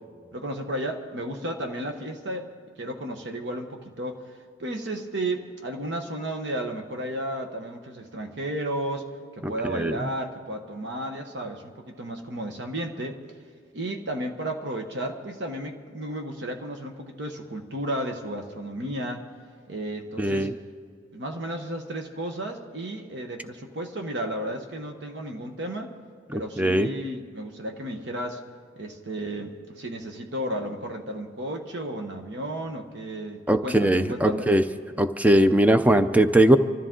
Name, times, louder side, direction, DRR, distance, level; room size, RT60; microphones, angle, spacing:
voice 1, 0.3-2.5 2.8-4.2 4.6-9.1 9.5-13.2 13.7-19.3 19.7-20.5 21.1-25.9 26.3-28.4 28.8-34.6, right 1 dB, 60° right, 4 dB, 1.1 m, -33 dB
voice 2, 9.4-10.1 20.2-20.5 26.3-26.9 33.5-34.6 35.0-36.6, right 1 dB, 10° right, 10 dB, 0.5 m, -20 dB
25.0 x 13.5 x 3.8 m, 2.1 s
head